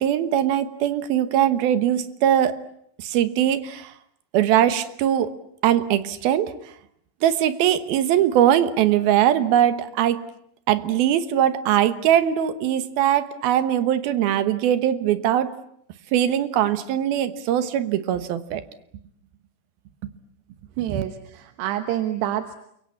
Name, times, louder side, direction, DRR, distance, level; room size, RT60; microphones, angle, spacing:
voice 1, 0.0-2.6 3.0-3.9 4.3-5.3 5.6-6.5 7.2-10.2 10.7-15.5 16.1-18.6 20.0-20.1 20.9-21.0, right 10 dB, 70° right, 12 dB, 2.9 m, -21 dB
voice 2, 20.8-22.6, right 12 dB, 90° right, 8 dB, 3.4 m, -27 dB
29.0 x 23.5 x 8.6 m, 0.72 s
omnidirectional pair, 4.7 m